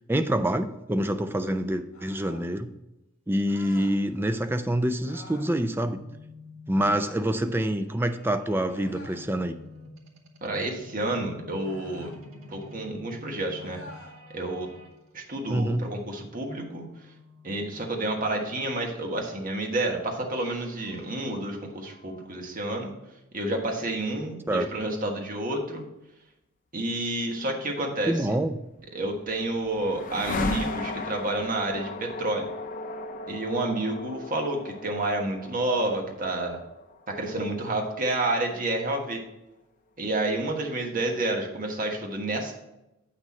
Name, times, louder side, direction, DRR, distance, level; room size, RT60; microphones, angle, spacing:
voice 1, 0.1-2.7 3.3-6.0 6.7-9.6 15.5-15.8 24.5-24.7 28.1-28.6, right 1 dB, 10° right, 8 dB, 0.4 m, -26 dB
sound 1, 1.9-2.5 3.5-4.0 5.0-5.5 6.7-7.3 8.7-9.3 11.6-12.2 13.6-14.2, left 2 dB, 80° left, 1.9 m, -48 dB
sound 2, 5.9-14.9 16.9-18.8 20.3-22.3, left 2 dB, 75° right, 1.5 m, -49 dB
voice 2, 10.4-12.1 12.5-13.8 14.3-14.7 15.1-16.8 17.4-22.9 23.3-25.8 26.7-28.1 28.9-32.4 33.3-36.6 37.2-39.2 40.0-42.5, right 2 dB, 40° right, 1 dB, 1.4 m, -29 dB
sound 3, 28.8-38.9, left 2 dB, 40° left, 0.6 m, -37 dB
7.8 x 6.2 x 4.2 m, 0.92 s
head